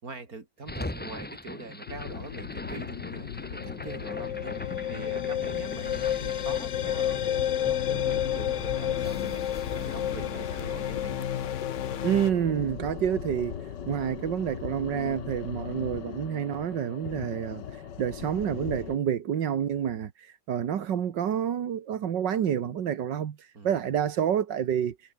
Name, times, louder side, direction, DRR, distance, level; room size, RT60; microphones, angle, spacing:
voice 1, 0.0-11.3 23.5-23.8, right 3 dB, 55° right, 4.0 m, -44 dB
sound 1, 0.6-12.8, left 1 dB, 15° left, 0.3 m, -42 dB
sound 2, 1.9-19.0, left 8 dB, 80° left, 2.1 m, -39 dB
sound 3, 3.6-12.3, left 10 dB, 55° left, 0.9 m, -30 dB
voice 2, 12.0-13.6 13.9-25.0, right 9 dB, 85° right, 2.0 m, -28 dB
omnidirectional pair, 1.9 m